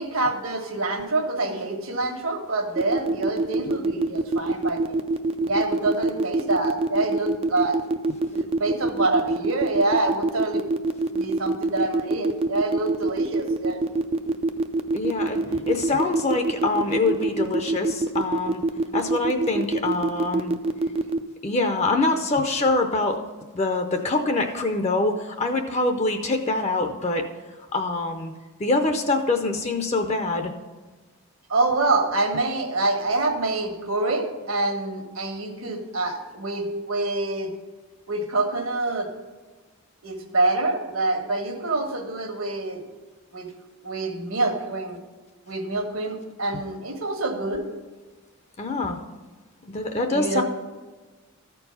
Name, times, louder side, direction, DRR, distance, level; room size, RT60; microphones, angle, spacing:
voice 1, 0.0-5.0 5.4-7.8 8.3-10.6 11.1-13.8 15.4-15.6 31.5-37.5 38.1-39.1 40.0-42.8 43.3-43.5 43.8-45.0 45.5-47.6 50.1-50.4, right 2 dB, 70° right, 3 dB, 1.4 m, -26 dB
sound 1, 2.8-21.2, right 2 dB, 25° right, 0.3 m, -24 dB
voice 2, 14.9-18.6 18.9-20.5 21.4-23.2 23.5-27.3 27.7-28.3 28.6-30.5 48.6-49.0 49.7-50.4, left 2 dB, 30° left, 6 dB, 0.6 m, -24 dB
13.5 x 4.6 x 5.5 m, 1.3 s
head